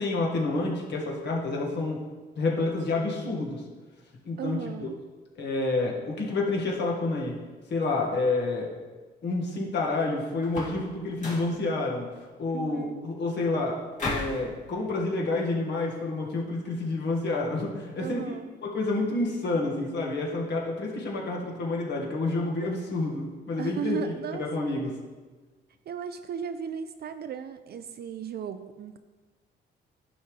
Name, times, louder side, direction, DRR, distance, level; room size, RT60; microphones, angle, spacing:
voice 1, 0.0-2.0 2.4-3.6 4.2-4.9 5.4-7.4 7.7-8.7 9.2-12.1 12.4-18.4 18.6-24.9, left 2 dB, 60° left, -1 dB, 1.8 m, -29 dB
voice 2, 4.4-5.0 12.5-13.1 18.0-18.5 23.6-24.5 25.9-29.0, right 8 dB, 55° right, 10 dB, 0.5 m, -35 dB
sound 1, 10.4-10.9 11.2-11.6 14.0-14.4, left 2 dB, 40° left, 2.4 m, -33 dB
11.0 x 5.3 x 3.3 m, 1.3 s
cardioid pair, 90°, 20 cm